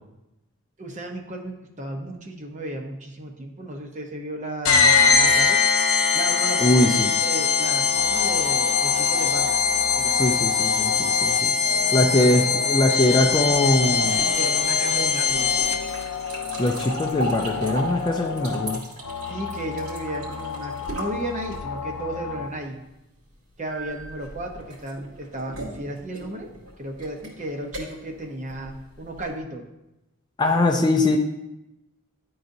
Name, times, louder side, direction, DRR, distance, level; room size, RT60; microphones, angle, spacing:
voice 1, 0.8-5.6 6.1-9.5 10.0-10.3 12.1-12.4 14.4-15.5 19.3-22.8 23.6-26.5 26.8-29.6, right 1 dB, 35° right, 3 dB, 0.8 m, -34 dB
sound 1, 4.6-16.0, left 5 dB, 75° left, 0.8 m, -21 dB
voice 2, 6.6-7.1 10.1-11.5 11.9-14.2 16.6-18.8 30.4-31.2, left 1 dB, 20° left, 2 dB, 0.4 m, -21 dB
sound 2, 7.9-22.5, left 6 dB, 90° left, 0.4 m, -33 dB
sound 3, 13.3-21.9 23.7-29.4, right 1 dB, 75° right, 2.2 m, -37 dB
11.5 x 3.9 x 2.6 m, 0.93 s
head